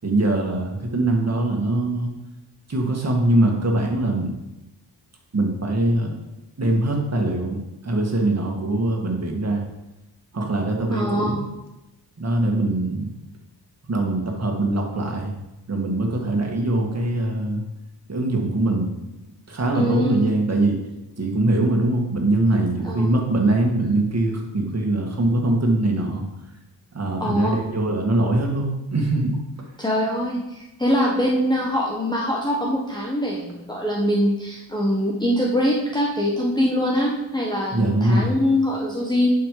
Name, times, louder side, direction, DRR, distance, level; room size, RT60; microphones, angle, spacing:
voice 1, 0.0-2.1 2.7-4.3 5.3-6.1 6.6-7.6 7.8-9.7 10.3-11.4 12.2-13.1 13.9-15.3 15.7-17.6 18.1-19.0 19.5-20.8 21.2-26.2 26.9-29.7 37.7-38.3, right 2 dB, 35° right, 1 dB, 2.3 m, -22 dB
voice 2, 10.9-11.4 19.7-20.3 22.8-23.1 27.2-27.5 29.8-39.3, equal, 10° left, -3 dB, 1.4 m, -23 dB
11.0 x 5.9 x 5.0 m, 0.96 s
cardioid pair, 95°, 43 cm